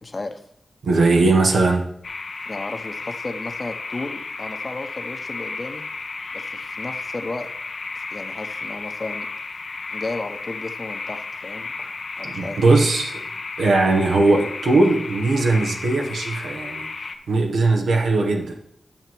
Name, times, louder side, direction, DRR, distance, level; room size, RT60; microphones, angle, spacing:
voice 1, 0.0-0.4 2.5-5.8 6.3-7.5 8.1-9.3 9.9-11.7 12.2-12.6, left 2 dB, 45° left, 7 dB, 1.1 m, -33 dB
voice 2, 0.8-1.9 12.2-13.2 13.6-16.9 17.3-18.5, right 3 dB, 90° right, 1 dB, 1.0 m, -19 dB
sound 1, 2.0-17.2, left 3 dB, 65° left, 0.8 m, -33 dB
8.8 x 5.7 x 4.5 m, 0.69 s
cardioid pair, 45°, 0 cm